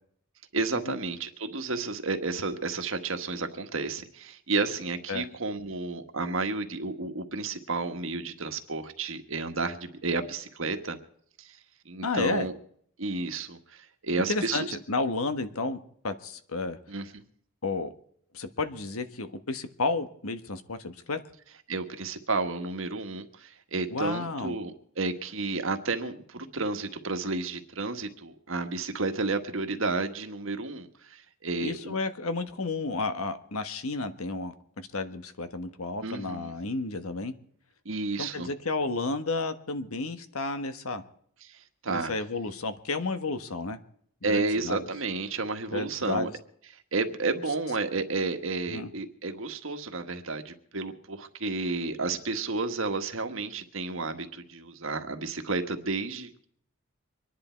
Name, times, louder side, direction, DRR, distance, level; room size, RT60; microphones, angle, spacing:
voice 1, 0.5-11.0 11.4-11.6 11.8-12.5 13.0-14.7 16.9-17.2 21.7-32.0 36.0-36.5 37.8-38.5 41.4-42.1 44.2-46.3 46.9-56.5, right 3 dB, 70° right, 6 dB, 1.5 m, -31 dB
voice 2, 12.0-12.5 14.3-15.8 16.0-16.8 17.6-17.9 18.3-21.2 23.9-24.6 31.6-37.3 38.2-41.0 41.9-43.8 44.2-44.8 45.7-46.3 48.7-48.9, left 3 dB, 85° left, 9 dB, 1.3 m, -32 dB
25.0 x 10.5 x 4.5 m, 0.63 s
head